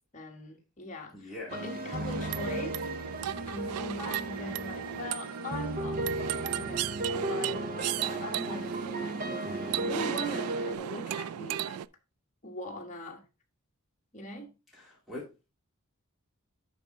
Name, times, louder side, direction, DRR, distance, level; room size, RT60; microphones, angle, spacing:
voice 1, 0.1-2.8 3.5-6.0 6.5-11.8 12.4-13.2 14.1-14.5, equal, 35° left, 1.5 m, -41 dB
voice 2, 1.1-1.6 1.9-2.3 14.7-15.5, left 2 dB, ahead, 2.1 m, -43 dB
sound 1, 1.5-10.8, right 1 dB, 40° right, 0.8 m, -35 dB
sound 2, 1.5-11.9, right 11 dB, 85° right, 0.3 m, -36 dB
10.5 x 4.2 x 3.7 m
head